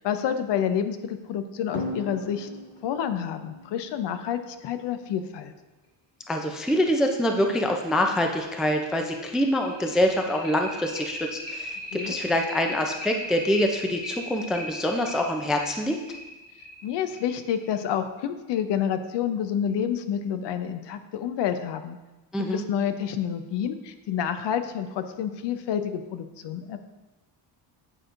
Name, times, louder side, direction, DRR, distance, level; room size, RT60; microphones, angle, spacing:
voice 1, 0.0-2.5 2.8-5.5 11.9-12.2 16.8-22.0 22.4-26.8, left 8 dB, 65° left, 9 dB, 0.6 m, -29 dB
sound 1, 1.7-4.9 6.4-6.5 6.9-7.0 7.4-7.5 7.9-17.9, left 1 dB, 30° left, 1.7 m, -38 dB
voice 2, 6.3-16.0 22.3-22.6, left 1 dB, ahead, 4 dB, 0.3 m, -25 dB
9.0 x 4.4 x 2.5 m, 1.1 s
cardioid pair, 110°, 45 cm